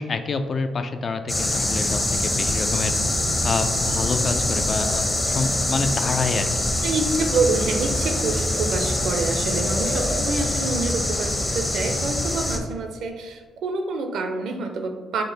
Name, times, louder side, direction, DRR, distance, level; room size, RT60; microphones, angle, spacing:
voice 1, 0.0-3.0 3.4-6.7 10.6-10.8, left 4 dB, 55° left, 8 dB, 0.3 m, -27 dB
sound 1, 1.3-12.6, left 1 dB, 30° left, 0.7 m, -24 dB
voice 2, 6.8-15.2, right 3 dB, 70° right, 5 dB, 0.4 m, -27 dB
5.0 x 2.1 x 3.8 m, 1.5 s
hypercardioid pair, 45°, 0 cm